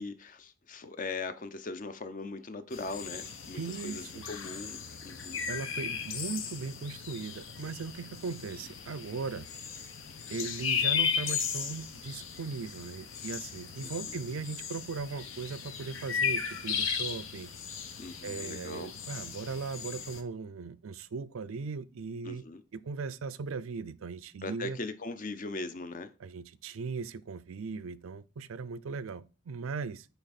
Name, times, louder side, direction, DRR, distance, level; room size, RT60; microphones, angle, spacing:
voice 1, 0.0-5.4 13.8-14.2 18.0-18.9 22.2-22.6 24.4-26.1, left 3 dB, 40° left, 0.6 m, -40 dB
sound 1, 2.7-20.2, left 7 dB, 75° left, 0.8 m, -36 dB
voice 2, 3.5-4.3 5.5-9.5 10.3-17.5 18.2-22.4 22.7-24.8 26.2-30.1, right 4 dB, 80° right, 0.5 m, -38 dB
8.2 x 3.5 x 4.1 m
head